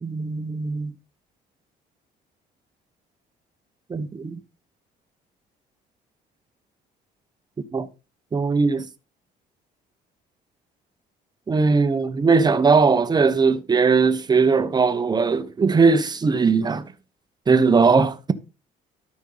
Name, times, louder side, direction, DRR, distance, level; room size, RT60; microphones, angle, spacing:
voice 1, 0.0-0.9 3.9-4.4 7.7-7.9 8.3-8.9 11.5-16.9 17.5-18.3, right 4 dB, 25° right, 1.0 m, -19 dB
12.5 x 5.4 x 3.9 m
cardioid pair, 110°, 17 cm